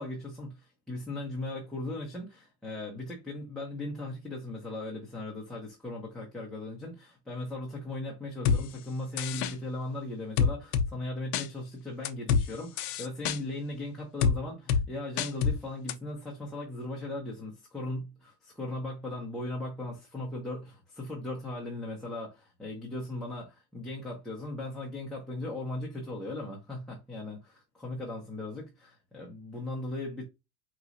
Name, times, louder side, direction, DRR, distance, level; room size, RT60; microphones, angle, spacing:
voice 1, 0.0-30.2, left 2 dB, ahead, 0.8 m, -38 dB
sound 1, 8.5-8.6 9.2-9.5 10.4-10.9 11.3-11.5 12.1-12.4 12.8-13.4 14.2-14.4 14.7-14.8 15.2-15.6 15.9-16.0, left 6 dB, 55° left, 0.6 m, -26 dB
4.6 x 3.0 x 2.6 m
cardioid pair, 160°, 31 cm